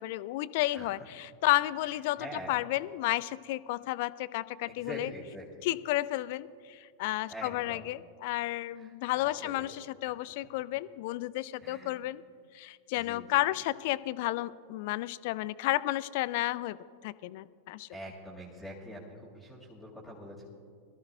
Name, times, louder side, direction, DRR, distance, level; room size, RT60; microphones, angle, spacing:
voice 1, 0.0-5.1 5.6-12.2 12.5-16.8 17.0-17.9, left 17 dB, 50° left, 18 dB, 0.3 m, -32 dB
voice 2, 2.2-2.5 4.7-5.4 7.3-7.8 8.8-8.9 9.2-9.6 10.1-10.2 11.6-12.0 12.9-13.4 17.9-20.4, equal, ahead, -4 dB, 2.5 m, -44 dB
23.0 x 14.5 x 2.2 m, 2.2 s
figure-of-eight pair, 90°, 0 cm